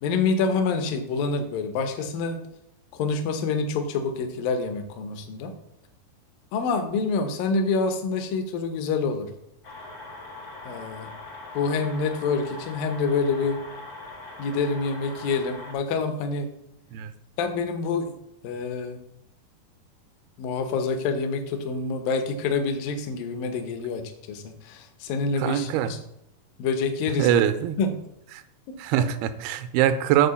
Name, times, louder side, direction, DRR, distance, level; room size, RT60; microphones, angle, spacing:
voice 1, 0.0-2.4 3.0-5.5 6.5-9.3 10.6-11.1 11.5-13.6 14.4-16.5 17.4-18.1 18.4-19.0 20.4-24.0 24.3-26.0 26.6-27.5 27.8-27.9, left 4 dB, 75° left, 7 dB, 2.5 m, -27 dB
sound 1, 9.6-15.7, left 2 dB, 55° left, 1.0 m, -41 dB
voice 2, 25.4-25.9 27.2-27.8 28.8-30.3, right 10 dB, 85° right, 11 dB, 2.5 m, -23 dB
8.0 x 4.4 x 6.9 m, 0.79 s
omnidirectional pair, 4.4 m